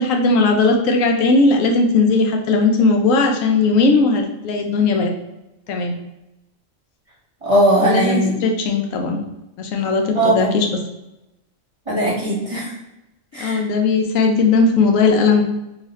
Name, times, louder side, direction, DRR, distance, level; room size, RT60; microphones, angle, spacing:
voice 1, 0.0-5.1 5.7-5.9 7.8-9.2 9.6-10.7 13.4-15.4, left 3 dB, 75° left, 3 dB, 1.0 m, -17 dB
voice 2, 7.4-8.4 10.1-10.5 11.9-12.7 13.3-13.6, right 1 dB, 30° right, -6 dB, 0.9 m, -18 dB
2.7 x 2.4 x 4.0 m, 0.93 s
omnidirectional pair, 1.4 m